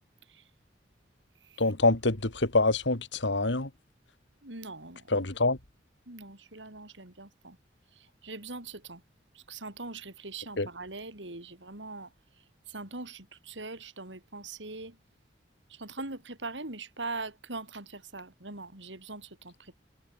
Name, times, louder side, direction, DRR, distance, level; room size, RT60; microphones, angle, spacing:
voice 1, 1.6-3.7 5.1-5.6 10.6-10.7, left 2 dB, 80° left, 2.6 m, -26 dB
voice 2, 4.4-5.0 6.1-7.6 8.0-9.0 9.3-12.1 12.7-15.0 15.7-19.8, right 3 dB, 90° right, 5.2 m, -41 dB
head